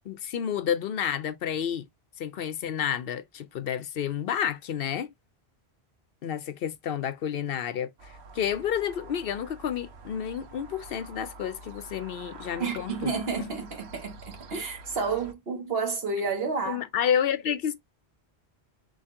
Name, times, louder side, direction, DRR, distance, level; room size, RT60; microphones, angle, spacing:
voice 1, 0.1-1.9 2.2-5.1 6.2-13.1 16.7-17.8, left 9 dB, 65° left, 0.8 m, -30 dB
sound 1, 8.0-15.3, right 3 dB, 85° right, 1.1 m, -47 dB
voice 2, 12.6-16.9, right 4 dB, 65° right, 1.5 m, -30 dB
4.3 x 2.8 x 3.6 m
omnidirectional pair, 1.1 m